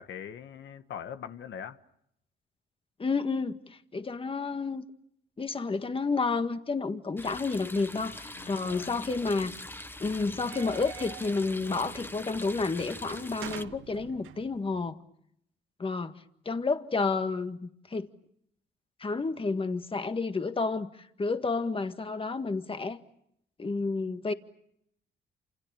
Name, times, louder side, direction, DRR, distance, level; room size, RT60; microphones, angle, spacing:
voice 1, 0.0-1.8 8.3-8.9, left 8 dB, 70° left, 1.5 m, -42 dB
voice 2, 3.0-4.8 5.4-9.5 10.0-15.0 15.8-16.1 16.4-18.1 19.0-23.0 23.6-24.3, left 4 dB, 25° left, 1.8 m, -30 dB
sound 1, 7.2-13.6, left 1 dB, 10° left, 1.3 m, -43 dB
sound 2, 10.2-14.8, right 12 dB, 80° right, 1.3 m, -46 dB
29.0 x 27.5 x 7.0 m
cardioid pair, 90°, 20 cm